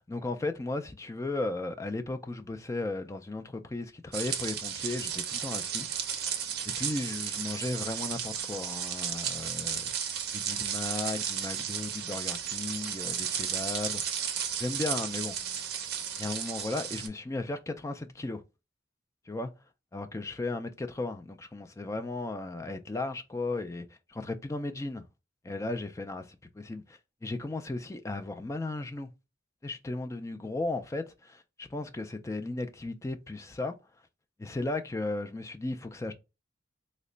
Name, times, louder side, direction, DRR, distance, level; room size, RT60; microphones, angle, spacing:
voice 1, 0.0-5.9 6.6-9.9 10.3-14.0 14.6-15.4 16.2-18.4 19.3-19.5 19.9-25.1 25.4-29.1 29.6-33.7 34.4-36.1, left 2 dB, 15° left, 0.3 m, -35 dB
sound 1, 4.1-17.1, right 8 dB, 50° right, 0.6 m, -34 dB
3.1 x 2.1 x 3.7 m
head